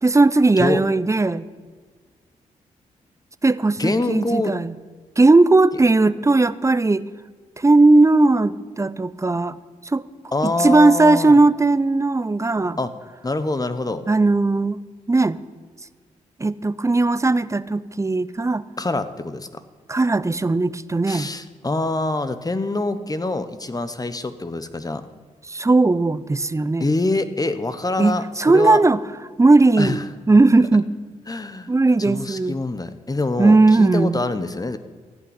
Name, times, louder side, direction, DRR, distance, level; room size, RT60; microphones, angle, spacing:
voice 1, 0.0-1.5 3.4-4.7 5.2-7.0 7.6-9.6 9.9-10.1 10.4-12.8 14.1-14.8 15.1-15.4 16.4-18.6 19.9-21.3 25.5-26.9 28.0-29.0 29.4-30.0 30.3-30.9 31.7-32.5 33.4-34.2, right 3 dB, 20° right, 16 dB, 0.6 m, -17 dB
voice 2, 3.8-4.6 10.3-11.4 12.8-12.9 13.2-14.0 18.8-19.5 21.1-25.0 26.8-28.8 29.8-30.0 31.3-31.7 32.0-34.8, left 2 dB, 25° left, 11 dB, 1.1 m, -25 dB
14.5 x 5.9 x 9.7 m, 1.5 s
supercardioid pair, 45°, 15 cm